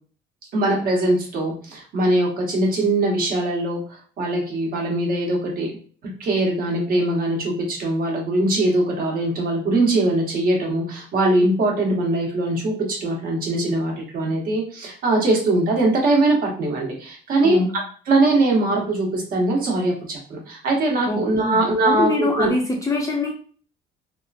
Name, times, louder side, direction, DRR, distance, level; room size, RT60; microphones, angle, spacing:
voice 1, 0.5-5.7 6.0-17.6 18.1-22.5, right 2 dB, 60° right, -1 dB, 1.1 m, -21 dB
voice 2, 21.1-21.6 21.9-23.3, left 2 dB, 20° left, -1 dB, 0.5 m, -23 dB
2.9 x 2.4 x 2.4 m, 0.42 s
cardioid pair, 110°, 17 cm